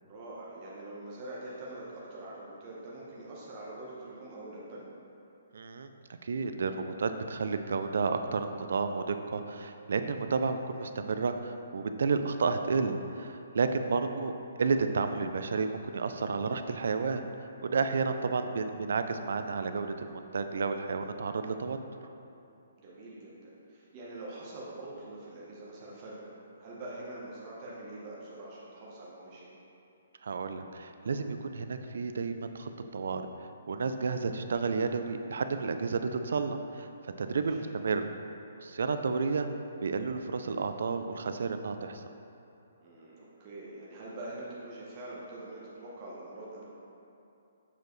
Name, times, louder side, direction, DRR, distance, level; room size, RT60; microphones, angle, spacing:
voice 1, 0.0-4.8 18.1-18.4 22.8-29.5 37.3-37.6 42.8-46.6, right 2 dB, 25° right, -6 dB, 0.9 m, -44 dB
voice 2, 5.5-5.9 6.2-14.3 14.6-17.2 17.6-21.8 30.2-33.2 33.7-38.1 38.6-39.5 39.8-42.0, right 4 dB, 70° right, 8 dB, 0.3 m, -31 dB
7.0 x 4.7 x 3.1 m, 2.7 s
hypercardioid pair, 170°, 0 cm